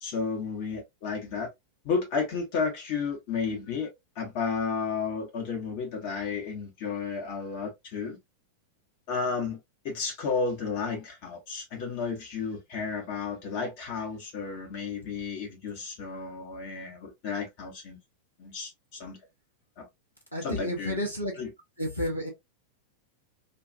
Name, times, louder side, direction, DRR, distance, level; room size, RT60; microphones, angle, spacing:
voice 1, 0.0-1.5 1.8-8.2 9.1-18.0 18.4-19.2 19.8-19.9 20.4-21.0 21.4-21.5, left 5 dB, 45° left, 1.2 m, -32 dB
voice 2, 20.3-21.3 21.8-22.3, equal, 85° left, 0.9 m, -31 dB
3.2 x 2.5 x 2.6 m
figure-of-eight pair, 90°, 0 cm